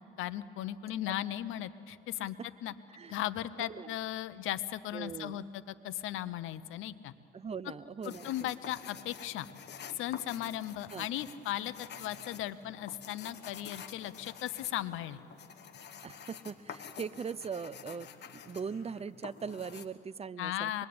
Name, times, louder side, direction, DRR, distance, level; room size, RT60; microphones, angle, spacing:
voice 1, 0.2-2.4 2.6-2.7 3.1-5.4 5.8-7.1 8.0-9.5 9.9-15.2 20.4-20.9, left 13 dB, 90° left, 14 dB, 0.9 m, -37 dB
voice 2, 3.6-4.0 4.9-5.4 7.3-8.5 10.9-11.1 16.0-18.1 18.5-20.9, right 6 dB, 30° right, 18 dB, 0.6 m, -40 dB
sound 1, 8.0-19.9, left 7 dB, 60° left, 1.6 m, -49 dB
25.0 x 21.5 x 8.7 m, 2.8 s
cardioid pair, 90°, 20 cm